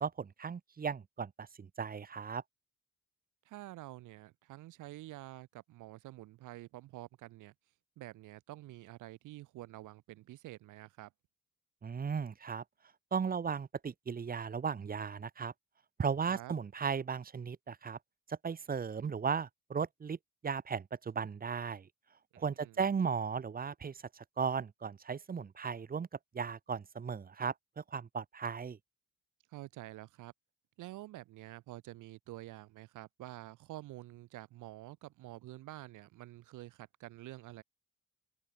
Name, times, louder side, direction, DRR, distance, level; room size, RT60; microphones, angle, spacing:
voice 1, 0.0-2.4 11.8-12.6 13.1-15.5 16.0-18.0 18.3-20.2 20.4-21.9 22.4-26.1 26.3-28.8, right 6 dB, 30° right, 0.9 m, -36 dB
voice 2, 3.4-7.5 8.0-11.1 16.3-16.5 22.3-22.8 29.5-30.3 30.8-37.6, right 16 dB, 85° right, 1.1 m, -48 dB
open air
cardioid pair, 90°, 30 cm